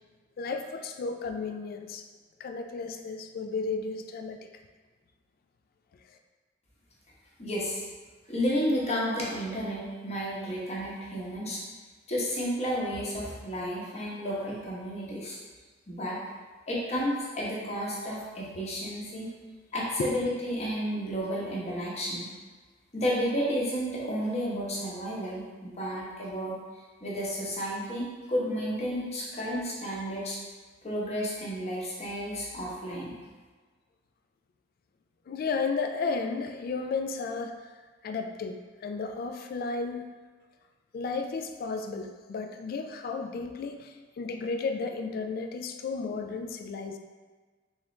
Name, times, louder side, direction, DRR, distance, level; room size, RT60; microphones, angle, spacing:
voice 1, 0.4-2.1 2.4-4.5 20.0-20.1 35.3-37.6 38.0-40.1 40.9-47.0, left 4 dB, 55° left, 6 dB, 0.3 m, -33 dB
voice 2, 7.4-7.8 8.3-11.6 12.1-15.4 15.9-16.2 16.7-19.3 19.7-22.3 22.9-26.6 27.0-30.4 30.8-33.1, equal, 35° left, -5 dB, 0.9 m, -32 dB
3.6 x 3.0 x 3.2 m, 1.4 s
head